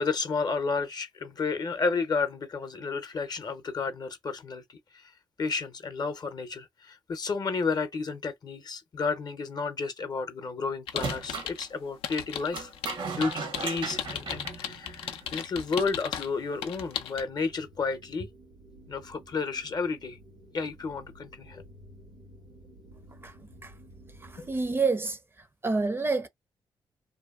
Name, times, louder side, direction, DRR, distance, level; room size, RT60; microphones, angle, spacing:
voice 1, 0.0-4.6 4.9-5.1 5.4-12.7 13.1-18.3 18.9-20.2 20.5-21.6 24.4-24.5, left 4 dB, 50° left, 0.6 m, -32 dB
sound 1, 10.9-11.7 12.0-16.3 16.6-17.2, left 9 dB, 90° left, 0.3 m, -36 dB
sound 2, 10.9-11.5 12.5-15.2, right 4 dB, 70° right, 0.7 m, -36 dB
sound 3, 13.7-24.8, right 1 dB, 85° right, 1.3 m, -54 dB
voice 2, 24.2-25.2 25.6-26.3, right 4 dB, 25° right, 0.4 m, -28 dB
2.6 x 2.2 x 2.3 m
supercardioid pair, 60°, 9 cm